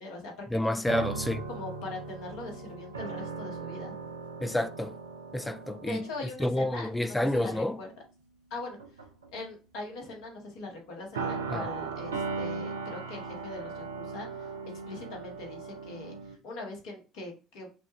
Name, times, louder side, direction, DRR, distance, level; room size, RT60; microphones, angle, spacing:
voice 1, 0.0-1.0 1.5-3.9 5.9-7.9 8.5-8.8 9.3-17.7, left 2 dB, 70° left, 1.4 m, -41 dB
voice 2, 0.5-1.4 4.4-5.0 5.3-6.0 6.4-7.8 11.5-11.7, left 1 dB, 10° left, 0.4 m, -29 dB
sound 1, 0.9-7.0 7.3-7.6 8.5-9.3 11.1-16.4, right 4 dB, 90° right, 0.5 m, -38 dB
6.0 x 2.4 x 3.0 m
hypercardioid pair, 60°, 0 cm